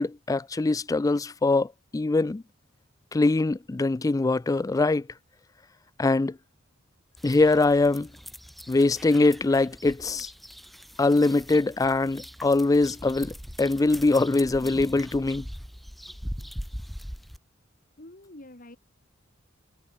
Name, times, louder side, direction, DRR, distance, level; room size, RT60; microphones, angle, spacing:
voice 1, 0.0-2.4 3.1-5.1 6.0-6.4 7.2-8.1 8.7-10.3 11.0-15.5, left 3 dB, 15° left, 0.3 m, -23 dB
sound 1, 7.2-17.4, equal, ahead, 1.3 m, -41 dB
voice 2, 18.0-18.8, left 1 dB, 45° left, 3.1 m, -46 dB
head